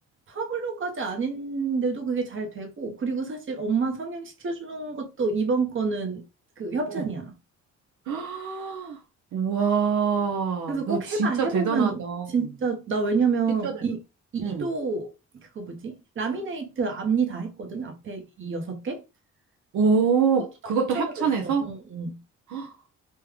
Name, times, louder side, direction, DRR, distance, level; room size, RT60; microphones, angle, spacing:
voice 1, 0.3-6.2 6.6-7.3 10.7-12.0 12.3-14.0 14.3-15.1 15.5-19.0 20.9-22.2, right 4 dB, 40° right, 1.0 m, -28 dB
voice 2, 8.1-9.0 9.3-12.3 13.6-13.7 14.4-14.7 19.7-21.7 22.5-22.7, right 5 dB, 75° right, 0.7 m, -25 dB
3.3 x 2.2 x 3.4 m
cardioid pair, 90°, 30 cm